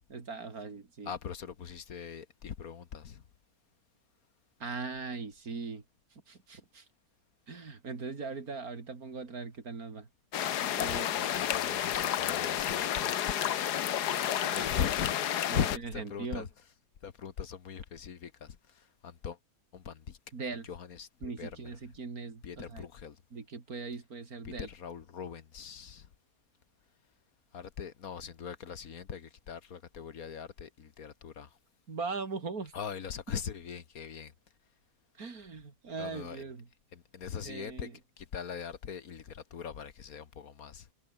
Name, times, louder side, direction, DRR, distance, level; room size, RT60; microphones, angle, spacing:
voice 1, 0.1-1.1 4.6-5.8 6.3-6.9 7.5-10.1 10.6-11.1 14.1-14.7 15.5-15.7 16.0-16.5 20.3-20.7 21.2-22.9 23.3-24.7 31.9-32.7 35.2-36.7 37.4-37.9, right 4 dB, 65° right, 3.1 m, -40 dB
voice 2, 1.0-3.2 10.8-13.2 14.5-16.5 17.0-19.4 19.7-20.2 20.6-21.7 22.4-23.2 24.4-26.1 27.5-31.6 32.7-34.3 36.0-36.4 36.9-37.9 38.2-40.9, left 7 dB, 60° left, 1.7 m, -40 dB
sound 1, 10.3-15.8, left 10 dB, 80° left, 1.5 m, -31 dB
omnidirectional pair, 1.7 m